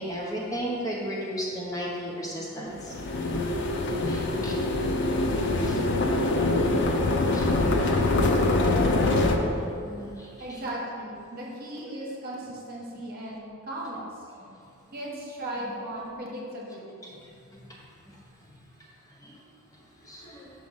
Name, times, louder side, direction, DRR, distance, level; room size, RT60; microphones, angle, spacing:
voice 1, 0.0-2.9 4.1-4.5 5.6-5.7 6.6-6.8 7.3-7.5 9.8-10.3 19.2-19.3 20.1-20.4, equal, 15° left, -5 dB, 0.9 m, -34 dB
sound 1, 2.8-9.4, left 2 dB, 55° left, 0.5 m, -24 dB
voice 2, 10.4-14.1 14.9-17.2, right 1 dB, 45° right, -4 dB, 1.2 m, -37 dB
6.2 x 3.7 x 5.5 m, 2.5 s
head